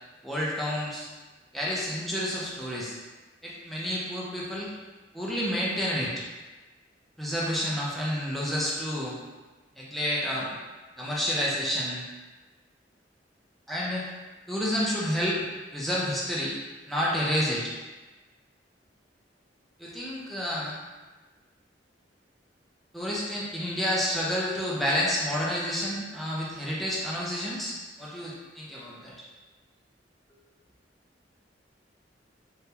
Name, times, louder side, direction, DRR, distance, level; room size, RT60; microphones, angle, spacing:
voice 1, 0.2-1.1 1.5-2.9 3.4-4.7 5.1-6.1 7.2-9.1 9.7-10.6 11.0-12.1 13.7-14.1 14.5-15.4 15.7-16.5 16.9-17.7 19.8-20.8 22.9-29.2, equal, ahead, -6 dB, 0.5 m, -29 dB
3.3 x 2.2 x 2.8 m, 1.2 s
head